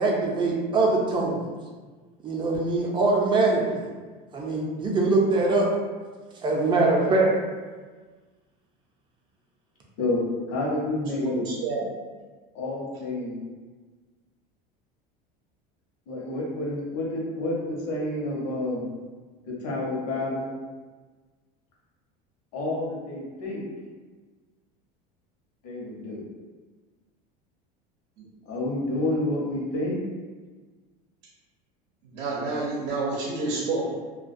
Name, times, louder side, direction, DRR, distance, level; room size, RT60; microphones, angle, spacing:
voice 1, 0.0-1.4 2.2-3.9 4.3-5.7 6.4-7.3, right 3 dB, 25° right, -2 dB, 0.5 m, -23 dB
voice 2, 10.5-11.3 12.5-13.4 16.1-18.9 19.6-20.5 22.5-23.6 25.6-26.2 28.5-30.0, left 2 dB, 70° left, -3 dB, 0.8 m, -29 dB
voice 3, 11.2-11.9 28.2-28.3 32.0-33.9, right 3 dB, 85° right, -5 dB, 0.6 m, -29 dB
2.2 x 2.2 x 2.5 m, 1.4 s
supercardioid pair, 125°, 20 cm